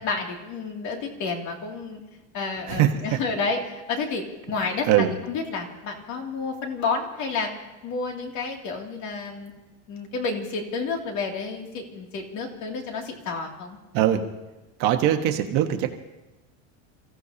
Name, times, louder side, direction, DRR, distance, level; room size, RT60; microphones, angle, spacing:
voice 1, 0.0-2.0 2.3-7.5 7.8-9.5 9.9-13.8, left 4 dB, 45° left, 1 dB, 2.7 m, -30 dB
voice 2, 14.8-15.9, right 12 dB, 55° right, 4 dB, 1.4 m, -21 dB
29.0 x 15.5 x 2.9 m, 1.1 s
cardioid pair, 165°, 39 cm